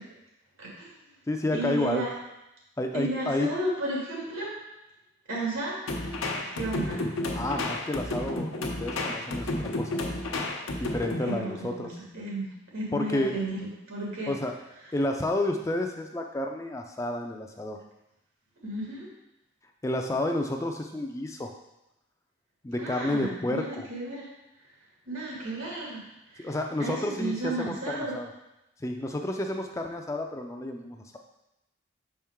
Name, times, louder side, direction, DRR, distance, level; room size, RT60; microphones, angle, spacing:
voice 1, 0.6-0.9 1.5-2.1 2.9-4.6 5.3-5.8 6.5-7.0 7.3-7.4 11.2-12.5 12.7-14.3 18.6-19.1 22.8-24.3 25.1-26.5 26.8-28.2, right 2 dB, 90° right, -5 dB, 2.2 m, -33 dB
voice 2, 1.3-2.0 2.8-3.5 7.4-10.1 10.8-11.9 12.9-13.3 14.3-14.6 14.9-17.8 19.8-21.5 22.6-23.9 26.4-28.3 28.8-31.2, left 1 dB, 15° left, 3 dB, 0.3 m, -30 dB
sound 1, 5.9-11.4, left 2 dB, 90° left, 0.8 m, -31 dB
6.1 x 4.4 x 3.6 m, 0.92 s
head